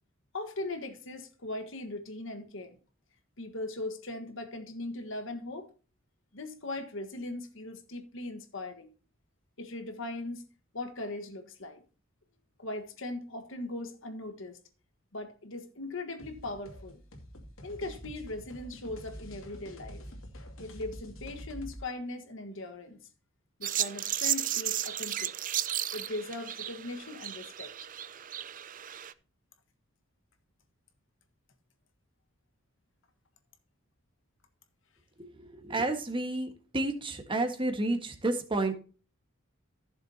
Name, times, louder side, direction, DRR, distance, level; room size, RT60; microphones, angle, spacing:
voice 1, 0.3-2.8 3.4-5.7 6.3-8.9 9.6-10.5 10.7-11.8 12.6-14.6 15.1-17.0 17.6-20.0 20.6-23.1 23.6-25.3 25.9-27.7, left 2 dB, 70° left, 1.6 m, -39 dB
sound 1, 16.2-21.8, equal, 85° left, 2.6 m, -46 dB
sound 2, 23.6-29.1, right 12 dB, 40° right, 0.5 m, -34 dB
voice 2, 35.2-38.7, right 2 dB, 25° right, 1.6 m, -31 dB
15.0 x 7.1 x 2.9 m
head